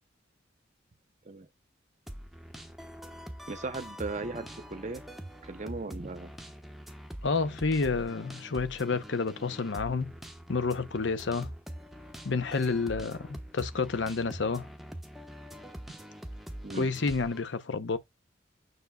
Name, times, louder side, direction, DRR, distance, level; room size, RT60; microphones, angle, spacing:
sound 1, 2.1-17.4, equal, ahead, 1.0 m, -44 dB
voice 1, 3.5-5.0 5.4-6.3 16.6-16.9, right 3 dB, 40° right, 0.7 m, -37 dB
voice 2, 7.2-10.1 10.5-11.5 12.2-14.7 16.7-18.0, left 4 dB, 75° left, 0.7 m, -29 dB
7.1 x 6.5 x 2.2 m
head